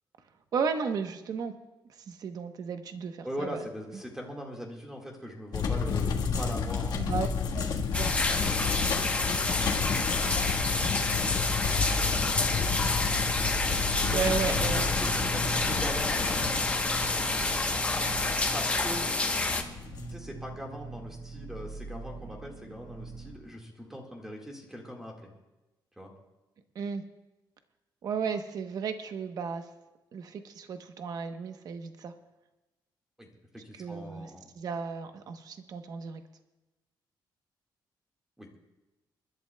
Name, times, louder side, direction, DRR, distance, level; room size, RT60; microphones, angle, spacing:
voice 1, 0.5-1.5 2.1-3.6 7.0-7.3 7.5-7.7 7.9-8.2 10.2-10.4 14.1-14.9 26.7-27.0 28.0-29.7 30.1-32.1 33.7-34.3 34.5-36.2, right 5 dB, 50° right, 7 dB, 1.0 m, -34 dB
voice 2, 3.2-7.4 8.3-9.2 11.1-12.7 14.1-16.7 18.5-19.1 20.1-25.3 26.0-26.1 33.2-34.5 38.4-38.5, equal, 5° right, 0 dB, 1.8 m, -41 dB
sound 1, 5.5-20.1, left 5 dB, 55° left, 1.5 m, -32 dB
sound 2, 7.9-19.6, left 3 dB, 15° left, 1.0 m, -29 dB
sound 3, 12.0-23.4, right 1 dB, 75° right, 1.6 m, -40 dB
28.5 x 11.5 x 2.3 m, 1.1 s
cardioid pair, 160°, 8 cm